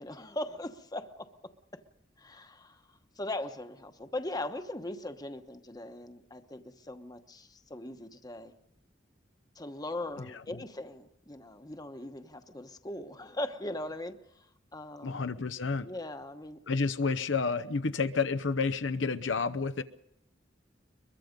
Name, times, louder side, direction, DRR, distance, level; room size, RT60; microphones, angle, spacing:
voice 1, 0.0-1.8 2.2-2.8 3.2-8.5 9.5-14.5 14.7-15.2 15.8-16.6, left 1 dB, 20° left, 8 dB, 1.1 m, -40 dB
voice 2, 10.2-10.6 15.0-15.9 16.7-19.8, left 4 dB, 80° left, 10 dB, 0.9 m, -30 dB
22.5 x 22.5 x 5.3 m, 0.77 s
head